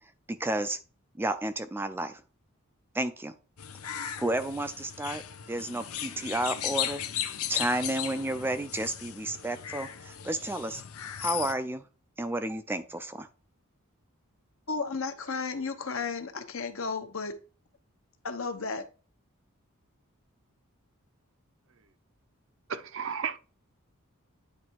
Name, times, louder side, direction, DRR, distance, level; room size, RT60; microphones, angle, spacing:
voice 1, 0.3-0.8 1.2-2.2 2.9-3.3 4.2-5.2 5.5-7.0 7.5-10.8 11.2-11.8 12.2-13.3, right 1 dB, 10° right, 0.4 m, -31 dB
Birds of Bengal, 3.6-11.5, left 10 dB, 85° left, 0.7 m, -36 dB
voice 2, 14.7-17.3 18.2-18.8, left 4 dB, 65° left, 1.0 m, -33 dB
voice 3, 22.7-23.4, right 7 dB, 60° right, 0.6 m, -34 dB
9.5 x 3.3 x 4.6 m
head